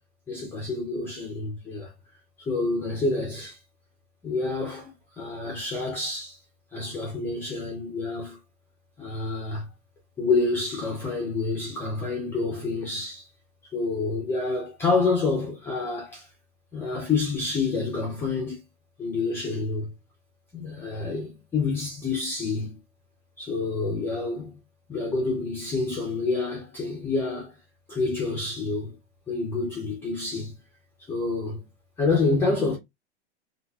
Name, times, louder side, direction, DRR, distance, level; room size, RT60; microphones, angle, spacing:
voice 1, 0.3-1.9 2.4-3.6 4.2-6.4 6.7-8.4 9.0-9.7 10.2-13.3 13.7-16.3 16.7-18.6 19.0-19.9 20.5-22.8 23.4-24.5 24.9-27.5 27.9-28.9 29.3-30.5 31.0-31.6 32.0-32.8, left 3 dB, 5° left, 0.4 m, -28 dB
4.0 x 2.5 x 2.2 m
supercardioid pair, 155°, 35 cm